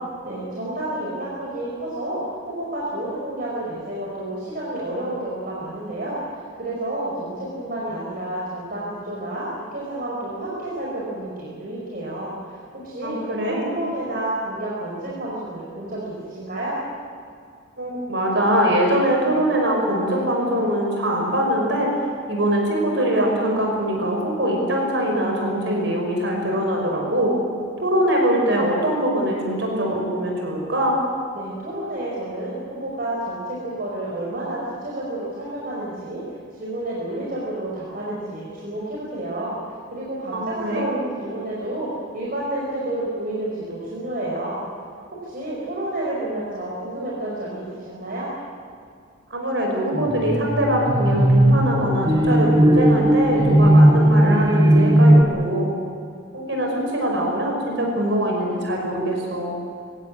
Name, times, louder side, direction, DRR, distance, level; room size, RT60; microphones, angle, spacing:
voice 1, 0.2-2.2 2.5-6.2 6.6-16.8 31.3-36.2 36.6-39.6 39.9-44.6 45.2-48.3, right 1 dB, 45° right, -5 dB, 5.0 m, -30 dB
voice 2, 13.0-13.6 17.8-27.3 27.8-31.0 40.3-40.9 49.3-55.7 56.3-59.6, equal, 65° right, 0 dB, 5.6 m, -22 dB
sound 1, 49.9-55.2, right 1 dB, 20° right, 1.2 m, -16 dB
24.0 x 17.0 x 9.7 m, 2.3 s
head